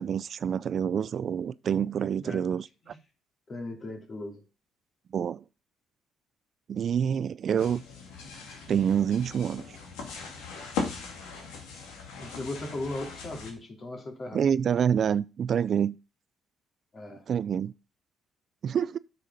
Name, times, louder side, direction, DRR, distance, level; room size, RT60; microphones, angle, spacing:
voice 1, 0.0-2.7 5.1-5.4 6.7-7.8 8.7-9.8 14.3-16.0 17.3-17.7 18.6-19.0, right 8 dB, 55° right, 0.4 m, -27 dB
voice 2, 3.5-4.4 12.2-14.5 16.9-17.2, left 2 dB, 40° left, 3.0 m, -37 dB
sound 1, 7.6-13.5, left 5 dB, 90° left, 2.4 m, -39 dB
8.8 x 6.8 x 5.6 m
supercardioid pair, 75°, 0 cm